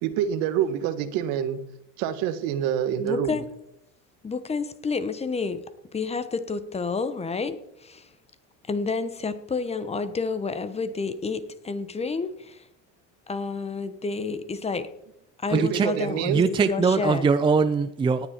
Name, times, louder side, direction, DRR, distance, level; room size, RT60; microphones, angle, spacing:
voice 1, 0.0-1.6 2.0-3.4 15.5-16.5, right 9 dB, 75° right, 1.5 m, -27 dB
voice 2, 3.0-3.5 4.2-5.6 5.9-8.1 8.7-12.7 13.3-14.9 15.4-17.3, left 4 dB, 20° left, 1.0 m, -30 dB
voice 3, 15.5-15.9 16.3-18.3, right 5 dB, 15° right, 0.5 m, -22 dB
18.0 x 9.8 x 4.4 m
cardioid pair, 130°, 34 cm